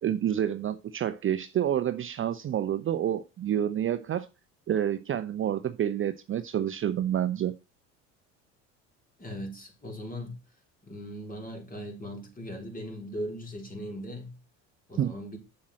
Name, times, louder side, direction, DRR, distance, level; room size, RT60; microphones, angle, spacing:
voice 1, 0.0-4.3 4.7-7.5 15.0-15.1, right 10 dB, 30° right, 0.6 m, -28 dB
voice 2, 9.2-10.4 10.8-14.4 14.9-15.4, equal, 20° left, 4.1 m, -39 dB
7.6 x 7.2 x 4.3 m
hypercardioid pair, 75°, 39 cm